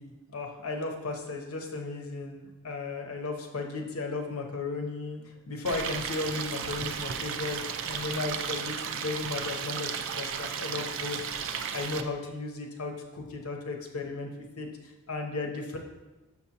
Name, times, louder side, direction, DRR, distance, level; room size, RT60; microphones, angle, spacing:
voice 1, 0.0-5.2 5.5-11.2 11.7-14.3 14.6-14.7 15.1-15.8, left 3 dB, 85° left, 3 dB, 0.9 m, -35 dB
Stream, 5.6-12.0, right 7 dB, 60° right, 0.4 m, -34 dB
6.5 x 6.0 x 2.8 m, 1.1 s
head